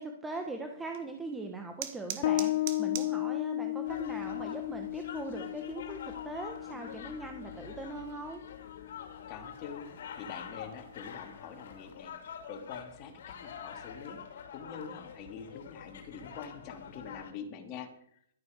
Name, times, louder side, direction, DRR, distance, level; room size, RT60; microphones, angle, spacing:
voice 1, 0.0-8.4, right 2 dB, 10° right, 4 dB, 1.3 m, -41 dB
sound 1, 0.8-11.9, right 11 dB, 45° right, 1.7 m, -49 dB
Bass guitar, 2.2-9.4, left 16 dB, 50° left, 0.4 m, -35 dB
sound 2, 3.8-17.3, left 8 dB, 65° left, 2.7 m, -46 dB
voice 2, 9.3-18.2, left 6 dB, 30° left, 3 dB, 2.7 m, -45 dB
13.0 x 9.5 x 6.7 m, 0.69 s
hypercardioid pair, 145°, 0 cm